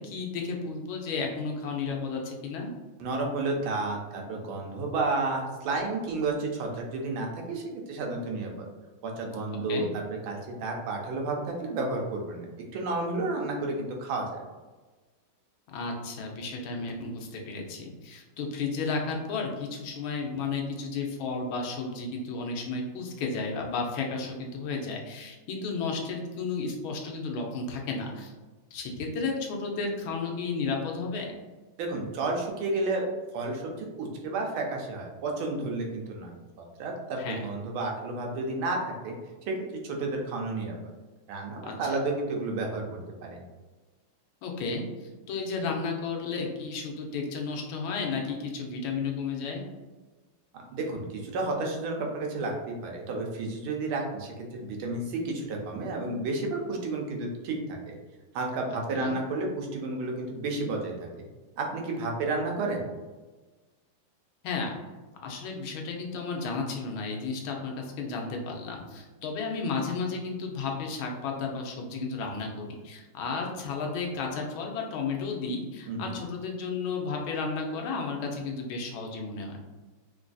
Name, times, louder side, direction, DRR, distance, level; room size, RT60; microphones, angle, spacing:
voice 1, 0.0-2.7 9.7-9.9 15.7-28.3 28.7-31.3 37.2-37.4 41.6-42.0 44.4-49.6 58.9-59.2 64.4-64.7 65.2-79.6, left 4 dB, 85° left, 1 dB, 1.5 m, -33 dB
voice 2, 3.0-8.7 9.0-12.5 12.7-14.4 31.8-33.1 33.3-36.3 36.6-38.8 39.0-39.1 39.5-39.6 39.8-40.8 41.3-42.8 43.2-43.4 50.5-57.9 58.3-60.9 61.6-62.8 75.9-76.2, right 2 dB, 85° right, 1 dB, 1.5 m, -31 dB
3.9 x 2.5 x 2.3 m, 1.2 s
omnidirectional pair, 2.2 m